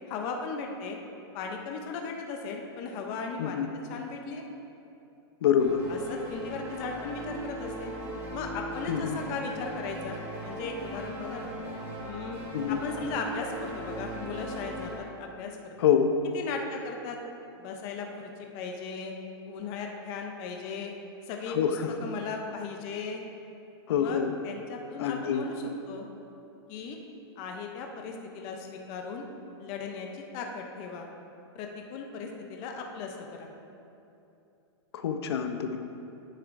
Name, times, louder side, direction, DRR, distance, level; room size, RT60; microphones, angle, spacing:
voice 1, 0.1-1.0 1.3-3.6 3.9-4.4 5.9-8.0 8.3-11.5 12.0-15.8 16.3-17.2 17.6-19.1 19.5-20.9 21.3-23.2 24.0-26.1 26.7-27.0 27.4-29.3 29.6-31.1 31.5-33.5, left 4 dB, 25° left, 2 dB, 0.5 m, -37 dB
voice 2, 5.4-5.8 8.9-9.2 12.5-12.8 15.8-16.1 21.5-21.9 23.9-24.3 25.0-25.4 34.9-35.8, left 8 dB, 65° left, 7 dB, 0.6 m, -26 dB
sound 1, 5.6-15.0, equal, 20° right, 1.5 m, -39 dB
9.7 x 8.9 x 2.5 m, 2.8 s
supercardioid pair, 175°, 14 cm